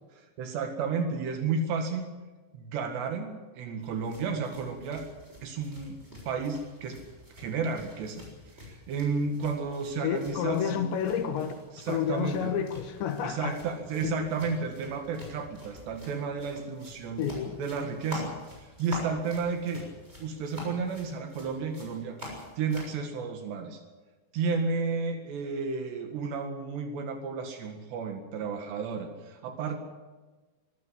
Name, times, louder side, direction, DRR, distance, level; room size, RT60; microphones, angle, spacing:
voice 1, 0.1-2.1 2.5-5.1 5.4-6.0 6.3-7.0 7.3-8.2 8.6-10.8 11.7-12.5 13.2-17.2 17.6-19.9 20.2-23.8 24.3-29.8, right 4 dB, 75° right, 5 dB, 4.0 m, -32 dB
sound 1, 3.8-23.0, left 1 dB, 15° right, 6.7 m, -46 dB
voice 2, 10.0-11.5 11.9-13.6 14.0-14.2 17.2-17.6, left 8 dB, 85° left, 6 dB, 3.9 m, -30 dB
24.5 x 15.0 x 7.5 m, 1.3 s
omnidirectional pair, 5.0 m